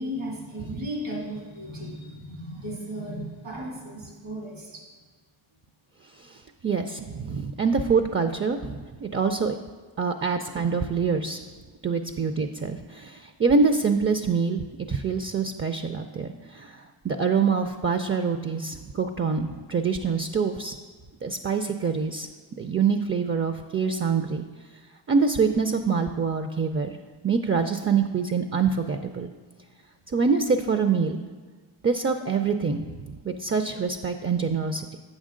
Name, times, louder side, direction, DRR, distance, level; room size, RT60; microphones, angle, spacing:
voice 1, 0.0-4.9, equal, 85° right, -3 dB, 2.4 m, -35 dB
voice 2, 6.2-9.6 10.0-11.4 11.8-20.7 21.2-22.3 22.6-24.4 25.1-27.0 27.2-29.3 30.1-31.2 31.8-35.0, right 5 dB, 30° right, 8 dB, 0.4 m, -25 dB
8.1 x 6.4 x 3.8 m, 1.4 s
cardioid pair, 45°, 48 cm